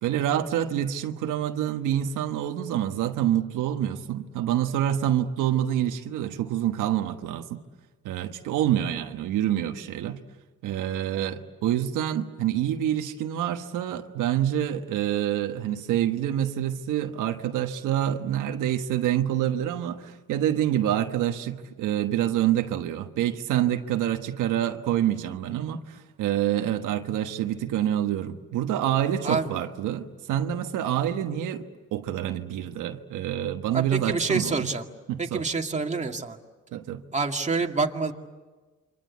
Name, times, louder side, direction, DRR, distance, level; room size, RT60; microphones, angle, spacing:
voice 1, 0.0-7.6 8.0-10.2 10.6-34.7 35.1-35.4 36.7-37.0, right 11 dB, 90° right, 1.3 m, -27 dB
voice 2, 29.2-29.6 33.7-34.8 35.2-36.4 37.1-38.1, right 4 dB, 25° right, 2.2 m, -27 dB
28.5 x 24.5 x 8.4 m
cardioid pair, 90°, 30 cm